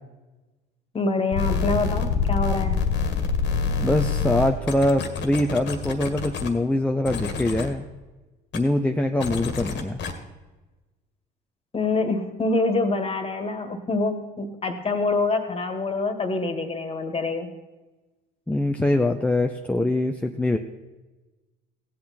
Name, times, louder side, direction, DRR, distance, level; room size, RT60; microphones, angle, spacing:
voice 1, 0.9-2.8 11.7-17.5, left 3 dB, 25° left, 7 dB, 1.8 m, -25 dB
sound 1, 1.3-6.5 7.1-7.7 8.5-8.6 9.2-10.1, left 5 dB, 55° left, 1.7 m, -26 dB
voice 2, 3.8-7.8 8.5-10.0 18.5-20.6, left 1 dB, 5° left, 4 dB, 0.6 m, -23 dB
16.0 x 8.3 x 4.3 m, 1.2 s
supercardioid pair, 75°, 21 cm